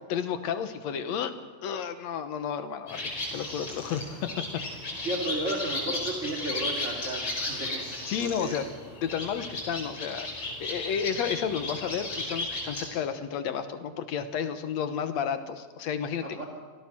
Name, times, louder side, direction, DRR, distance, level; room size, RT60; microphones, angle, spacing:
voice 1, 0.1-1.3 1.6-4.3 8.1-8.7 9.0-16.3, left 8 dB, 65° left, 9 dB, 2.2 m, -32 dB
sound 1, 2.9-12.8, left 2 dB, 50° left, 6.3 m, -35 dB
voice 2, 5.0-7.8 8.2-8.6 16.2-16.4, right 1 dB, 25° right, 1 dB, 2.4 m, -33 dB
26.5 x 18.5 x 6.0 m, 1.4 s
omnidirectional pair, 3.5 m